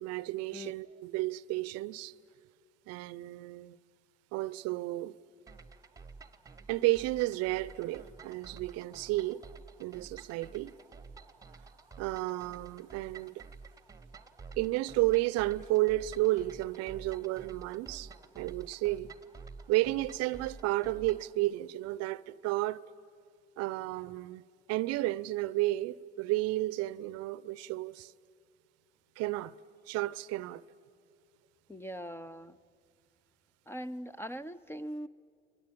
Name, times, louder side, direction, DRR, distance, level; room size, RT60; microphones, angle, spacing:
voice 1, 0.0-2.1 2.9-3.8 4.3-5.2 6.7-9.4 9.8-10.8 12.0-13.4 14.6-19.1 19.7-22.8 23.6-24.4 24.7-28.1 29.2-29.5 29.9-30.6, right 18 dB, 55° right, 0.7 m, -32 dB
sound 1, 5.5-21.3, right 4 dB, 10° right, 1.1 m, -51 dB
voice 2, 31.7-32.6 33.7-35.1, equal, 10° left, 0.6 m, -41 dB
28.5 x 23.0 x 8.6 m
hypercardioid pair, 70°, 30 cm